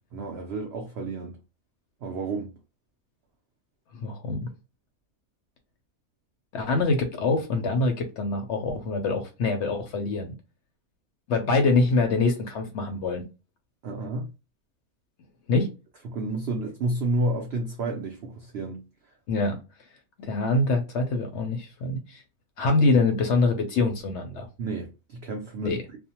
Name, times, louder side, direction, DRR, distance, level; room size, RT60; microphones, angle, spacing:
voice 1, 0.1-1.4 2.0-2.5 13.8-14.2 16.1-18.8 24.6-25.8, right 2 dB, 70° right, 0.6 m, -30 dB
voice 2, 3.9-4.5 6.5-10.3 11.3-13.2 15.5-15.7 19.3-19.6 20.2-22.2 22.6-24.5 25.6-25.8, left 3 dB, 65° left, 0.7 m, -24 dB
2.4 x 2.1 x 2.8 m
omnidirectional pair, 1.5 m